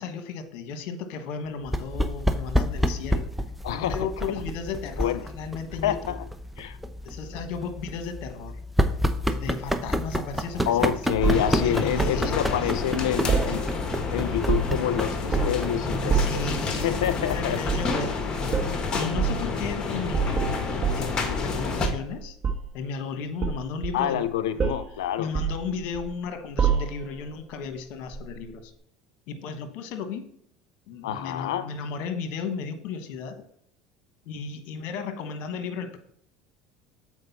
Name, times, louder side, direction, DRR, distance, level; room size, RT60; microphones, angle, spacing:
voice 1, 0.0-3.3 3.7-6.2 7.0-8.6 9.3-10.9 11.5-12.7 16.0-16.9 17.3-18.2 18.9-22.4 22.7-24.3 25.2-28.7 29.3-30.3 30.9-33.4 34.2-36.0, left 5 dB, 65° left, 8 dB, 1.2 m, -34 dB
sound 1, 1.7-17.8, equal, 5° right, 0.7 m, -30 dB
voice 2, 3.6-4.0 5.0-5.2 5.8-6.2 6.6-6.8 10.7-13.6 14.1-16.4 16.8-17.6 23.9-25.3 31.0-31.7, left 10 dB, 90° left, 13 dB, 0.6 m, -27 dB
sound 2, 11.2-21.9, left 4 dB, 35° left, 1.5 m, -29 dB
sound 3, 11.2-12.2 13.3-14.0 14.3-14.9 15.3-15.7 16.1-16.5 17.6-17.9 18.5-18.7 19.2-19.4 20.1-21.5 21.8-22.8 23.4-24.3 24.6-24.9 25.3-26.2 26.6-27.2 28.1-28.3, right 6 dB, 35° right, 1.4 m, -27 dB
7.5 x 4.8 x 4.1 m, 0.67 s
supercardioid pair, 95°, 3 cm